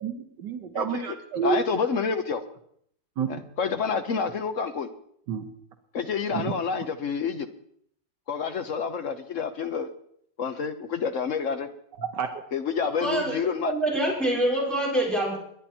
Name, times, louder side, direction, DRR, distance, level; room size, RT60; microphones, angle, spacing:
voice 1, 0.0-1.6 3.2-3.3 5.3-5.5 6.3-6.5 12.0-12.4, right 7 dB, 85° right, 3 dB, 1.8 m, -29 dB
voice 2, 0.7-1.1 1.4-2.4 3.3-4.9 5.9-7.5 8.3-9.9 10.4-11.7 12.5-13.7, left 5 dB, 55° left, 9 dB, 1.0 m, -28 dB
voice 3, 12.8-15.4, right 1 dB, ahead, -4 dB, 4.6 m, -26 dB
22.5 x 10.5 x 4.4 m, 0.67 s
omnidirectional pair, 1.8 m